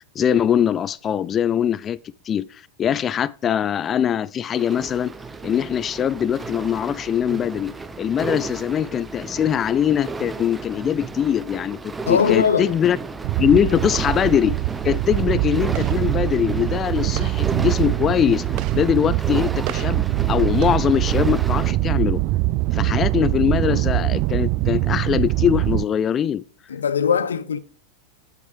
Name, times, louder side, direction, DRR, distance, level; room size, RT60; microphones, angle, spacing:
voice 1, 0.2-2.0 2.3-5.1 5.4-13.0 13.4-14.5 14.8-18.4 18.7-20.0 20.3-22.2 22.7-26.4, left 9 dB, 25° left, 0.4 m, -22 dB
sound 1, 4.5-21.7, right 3 dB, 10° right, 0.9 m, -33 dB
voice 2, 12.1-12.8 26.7-27.6, left 7 dB, 70° left, 0.8 m, -20 dB
sound 2, 13.2-25.8, right 19 dB, 40° right, 0.4 m, -23 dB
9.6 x 8.7 x 5.0 m
figure-of-eight pair, 90°, 0 cm